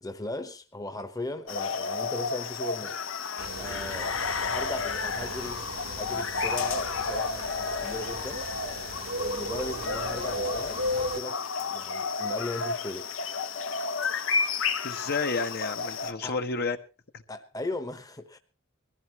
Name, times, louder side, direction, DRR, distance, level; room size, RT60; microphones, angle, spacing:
voice 1, 0.0-3.0 3.6-8.5 9.2-13.1 16.2-16.4 17.3-18.4, left 1 dB, 20° left, 1.1 m, -38 dB
sound 1, 1.5-16.1, left 5 dB, 70° left, 1.1 m, -32 dB
sound 2, 3.4-11.2, right 1 dB, 85° right, 1.5 m, -36 dB
voice 2, 14.8-16.8 17.1-17.2, left 4 dB, 50° left, 1.3 m, -30 dB
22.0 x 15.0 x 3.1 m
head